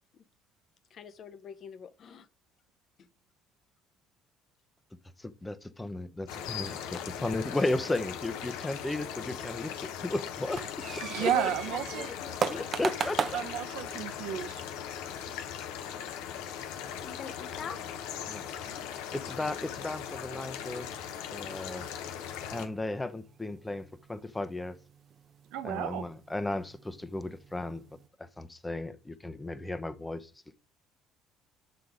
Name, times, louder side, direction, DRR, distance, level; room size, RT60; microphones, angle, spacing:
voice 1, 0.9-2.3 3.0-3.1 6.5-7.1 11.2-11.6 11.9-12.4 14.1-14.2 17.0-17.8, left 7 dB, 55° left, 0.7 m, -43 dB
voice 2, 5.2-6.8 7.2-11.3 12.5-13.4 18.3-18.4 19.1-20.9 21.3-21.9 22.5-24.8 25.6-27.8 28.2-30.3, left 2 dB, 15° left, 0.7 m, -35 dB
sound 1, 6.3-22.7, left 9 dB, 85° left, 0.8 m, -39 dB
sound 2, 10.4-28.1, right 6 dB, 45° right, 0.7 m, -42 dB
voice 3, 11.0-12.1 13.3-14.5 25.5-26.1, right 11 dB, 80° right, 0.7 m, -32 dB
6.6 x 4.0 x 4.8 m
supercardioid pair, 80°, 0 cm